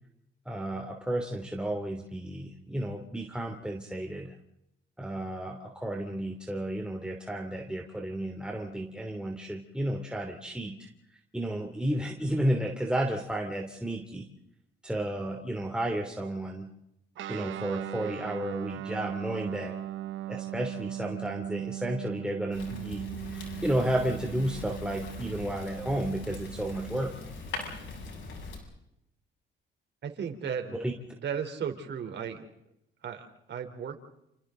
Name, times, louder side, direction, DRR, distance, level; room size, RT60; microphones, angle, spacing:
voice 1, 0.4-4.4 5.0-14.3 14.8-16.7 17.3-19.8 20.3-27.1 30.8-30.9, right 1 dB, 5° right, 1 dB, 3.1 m, -32 dB
Guitar, 17.1-27.1, right 13 dB, 75° right, 1.2 m, -39 dB
Fire, 22.5-28.6, left 3 dB, 75° left, 7.6 m, -41 dB
voice 2, 30.0-30.7 31.2-32.5 33.0-34.0, right 7 dB, 60° right, 5 dB, 3.9 m, -35 dB
29.0 x 28.5 x 4.0 m, 0.82 s
cardioid pair, 90°, 20 cm